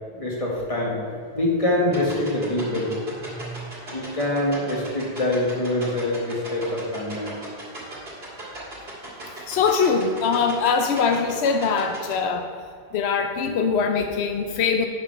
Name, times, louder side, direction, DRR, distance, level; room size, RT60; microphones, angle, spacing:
voice 1, 0.1-0.9 1.3-2.9 3.2-3.6 3.9-7.3, left 1 dB, 35° left, -3 dB, 1.6 m, -25 dB
sound 1, 1.9-12.1, right 2 dB, 75° right, 2.3 m, -37 dB
voice 2, 9.5-12.5 12.9-14.9, left 5 dB, 85° left, 5 dB, 0.9 m, -22 dB
6.8 x 5.8 x 5.6 m, 2.2 s
omnidirectional pair, 1.1 m